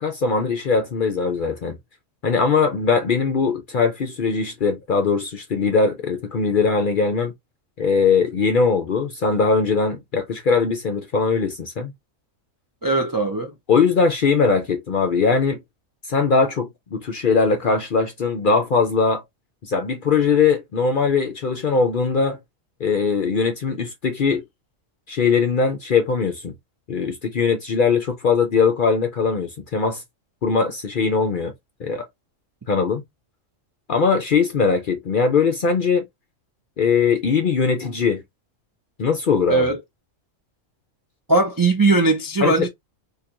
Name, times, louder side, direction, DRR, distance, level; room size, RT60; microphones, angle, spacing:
voice 1, 0.0-1.8 2.2-7.3 7.8-11.9 13.7-15.6 16.1-19.2 19.6-22.4 22.8-24.4 25.1-26.5 26.9-30.0 30.4-31.5 31.8-32.1 32.7-33.0 33.9-36.0 36.8-38.2 39.0-39.7 42.4-42.7, left 5 dB, 55° left, 0.6 m, -20 dB
voice 2, 12.8-13.6 39.5-39.8 41.3-42.7, right 3 dB, 30° right, 0.3 m, -19 dB
4.3 x 2.9 x 2.4 m
omnidirectional pair, 1.4 m